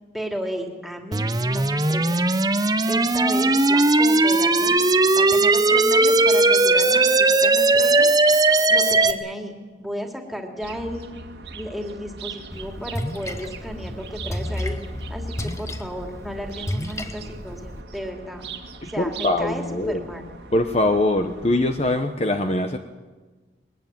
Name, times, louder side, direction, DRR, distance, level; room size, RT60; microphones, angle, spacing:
voice 1, 0.1-2.3 2.9-4.8 5.1-8.4 8.7-11.1 11.5-14.8 15.1-18.4 18.8-20.2, equal, ahead, 2 dB, 2.6 m, -34 dB
sound 1, 1.1-9.1, right 2 dB, 20° right, 0.8 m, -18 dB
sound 2, 10.6-22.0, right 4 dB, 65° right, 2.0 m, -41 dB
Splash splatter, 12.5-17.8, left 1 dB, 15° left, 1.3 m, -32 dB
voice 2, 18.8-20.1 20.5-22.8, left 1 dB, 35° left, 6 dB, 1.0 m, -22 dB
21.5 x 20.0 x 9.3 m, 1.3 s
head